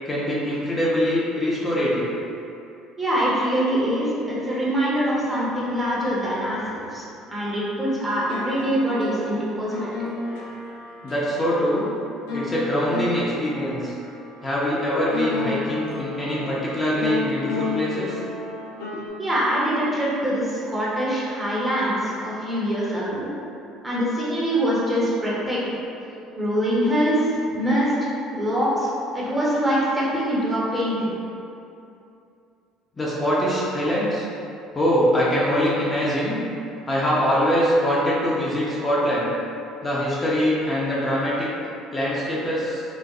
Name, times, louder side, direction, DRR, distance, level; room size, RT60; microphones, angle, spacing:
voice 1, 0.1-2.2 11.0-11.9 12.3-13.9 14.4-18.2 26.1-26.6 33.0-34.3 34.7-36.4 36.9-39.3 39.8-41.5 41.9-42.8, equal, 25° left, -7 dB, 0.7 m, -23 dB
voice 2, 3.0-7.0 7.3-9.7 19.2-23.3 23.8-25.8 26.4-31.2, equal, 20° right, -7 dB, 1.0 m, -24 dB
sound 1, 8.1-19.1, left 3 dB, 85° left, 0.5 m, -33 dB
4.2 x 2.2 x 2.4 m, 2.7 s
supercardioid pair, 80°, 0 cm